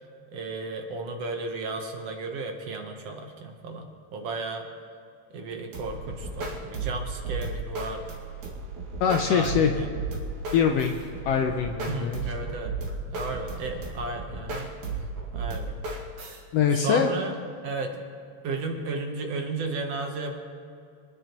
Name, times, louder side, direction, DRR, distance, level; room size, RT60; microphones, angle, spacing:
voice 1, 0.3-4.7 5.3-8.0 9.3-9.9 11.9-12.7 13.1-14.7 15.3-15.8 16.7-17.3 17.6-18.0 18.4-20.4, right 3 dB, 65° right, 3 dB, 2.0 m, -34 dB
sound 1, 5.7-16.4, right 3 dB, 80° right, 3.4 m, -34 dB
voice 2, 9.0-9.7 10.5-11.0 11.2-12.6 16.5-17.1, left 7 dB, 75° left, 4 dB, 1.5 m, -23 dB
25.5 x 10.0 x 3.0 m, 2.4 s
omnidirectional pair, 3.3 m